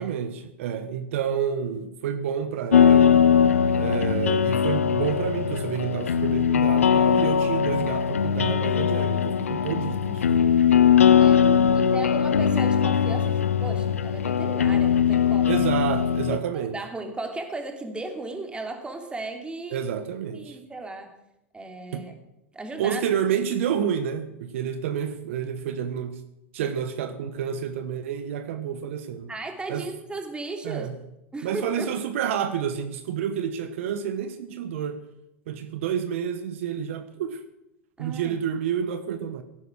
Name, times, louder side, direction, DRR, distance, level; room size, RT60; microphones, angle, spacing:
voice 1, 0.0-3.3 3.7-10.6 11.4-11.9 15.5-16.8 19.7-20.6 21.9-22.1 22.8-26.2 26.5-29.3 29.7-29.9 30.6-30.9 31.4-35.0 35.5-37.4 38.0-39.4, right 8 dB, 70° right, 1.1 m, -29 dB
sound 1, 2.7-16.4, left 8 dB, 90° left, 0.7 m, -20 dB
voice 2, 11.2-11.5 11.9-15.7 16.5-19.8 20.3-21.1 21.5-22.1 22.5-23.0 29.3-30.9 31.3-31.9 38.0-38.4, right 2 dB, 15° right, 3.0 m, -36 dB
17.5 x 9.5 x 6.4 m
hypercardioid pair, 95°, 7 cm